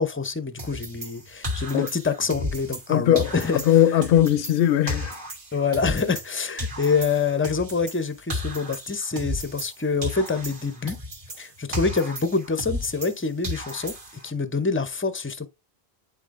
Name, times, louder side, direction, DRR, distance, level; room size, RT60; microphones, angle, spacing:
voice 1, 0.0-4.1 5.5-11.0 11.4-13.9 14.2-15.5, left 4 dB, 15° left, 0.5 m, -26 dB
sound 1, 0.6-2.9 3.2-6.3 6.6-9.8 10.0-13.2 13.4-14.3, left 1 dB, 55° right, 1.6 m, -34 dB
voice 2, 2.9-3.3 3.5-5.1, left 11 dB, 65° left, 0.7 m, -19 dB
9.8 x 4.0 x 2.5 m
omnidirectional pair, 1.1 m